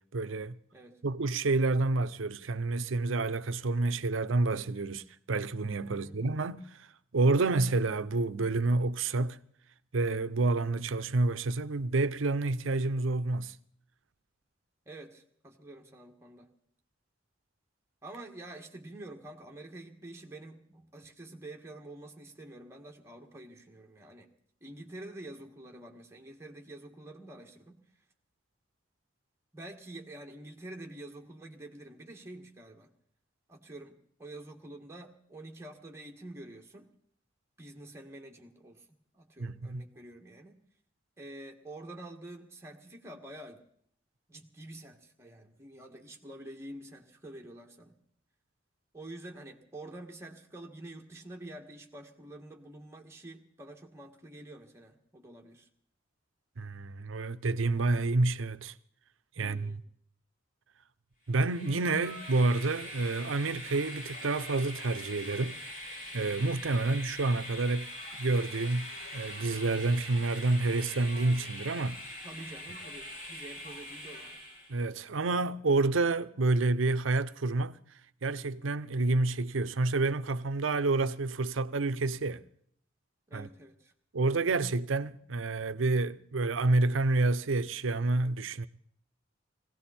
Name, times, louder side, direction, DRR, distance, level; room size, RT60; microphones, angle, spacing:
voice 1, 0.0-0.6 1.0-6.9 7.1-9.4 9.9-13.5 39.4-39.8 56.6-58.7 59.4-59.8 61.3-65.6 66.1-67.9 68.2-72.0 74.7-77.8 78.2-82.4 83.3-83.5 84.1-88.7, right 3 dB, 90° right, 0.7 m, -29 dB
voice 2, 14.9-16.5 18.0-24.3 24.6-27.8 29.5-32.9 33.5-36.9 37.6-38.9 39.1-40.6 41.2-43.6 44.3-48.0 48.9-55.7 59.4-59.8 72.2-74.4 83.3-83.9, right 1 dB, 15° right, 1.9 m, -47 dB
Train, 61.3-74.8, left 1 dB, 50° left, 7.3 m, -43 dB
20.0 x 16.5 x 4.3 m
head